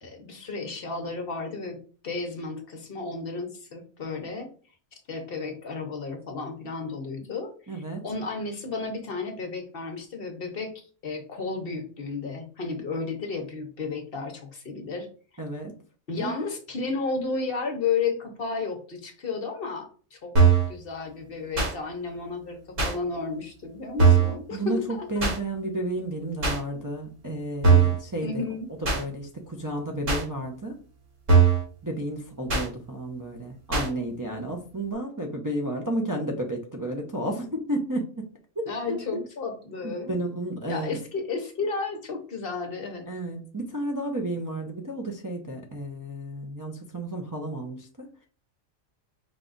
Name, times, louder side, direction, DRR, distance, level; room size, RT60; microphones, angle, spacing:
voice 1, 0.0-4.5 4.9-15.1 16.1-20.3 20.7-25.1 28.2-28.7 38.7-40.1 40.7-43.1, left 4 dB, 50° left, 5 dB, 0.9 m, -33 dB
voice 2, 7.7-8.0 15.4-15.7 16.2-16.3 24.5-28.4 28.9-30.8 31.8-38.3 38.9-39.0 39.8-41.0 43.1-48.1, right 1 dB, 25° right, 0 dB, 0.4 m, -32 dB
sound 1, 20.4-20.7 21.6-21.7 22.8-22.9 24.0-24.3 25.2-25.4 26.4-26.6 27.6-28.0 28.8-29.0 30.1-30.2 31.3-31.6 32.5-32.7 33.7-33.9, right 5 dB, 75° right, 2.2 m, -19 dB
5.3 x 2.3 x 3.9 m, 0.40 s
omnidirectional pair, 1.3 m